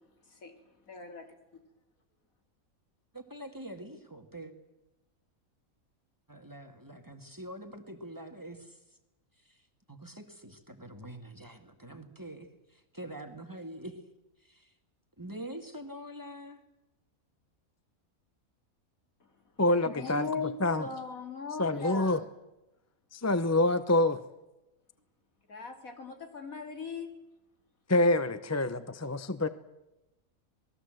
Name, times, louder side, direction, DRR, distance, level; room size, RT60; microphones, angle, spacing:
voice 1, 0.9-1.4 19.9-22.3 25.5-27.1, left 4 dB, 70° left, 2.9 m, -39 dB
voice 2, 3.1-4.5 6.3-8.8 9.4-14.0 14.4-14.7 15.2-16.6, right 1 dB, 15° right, 2.0 m, -45 dB
voice 3, 19.6-20.9 21.6-22.2 23.1-24.2 27.9-29.5, left 2 dB, 15° left, 0.5 m, -26 dB
27.0 x 20.0 x 7.8 m
omnidirectional pair, 1.5 m